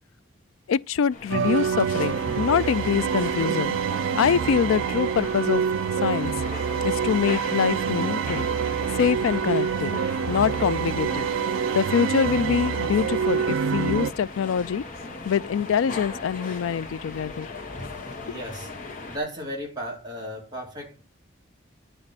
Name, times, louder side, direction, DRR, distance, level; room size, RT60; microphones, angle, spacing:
voice 1, 0.7-3.8 4.2-5.6 6.0-6.3 6.8-8.5 9.0-9.9 10.3-11.3 11.7-14.8 15.2-17.5, left 7 dB, 85° left, 0.3 m, -24 dB
sound 1, 1.1-19.2, left 3 dB, 40° left, 1.2 m, -38 dB
sound 2, 1.3-14.1, right 7 dB, 75° right, 0.3 m, -26 dB
voice 2, 18.2-18.7 19.1-21.0, equal, 20° right, 2.4 m, -35 dB
10.0 x 5.2 x 4.1 m
head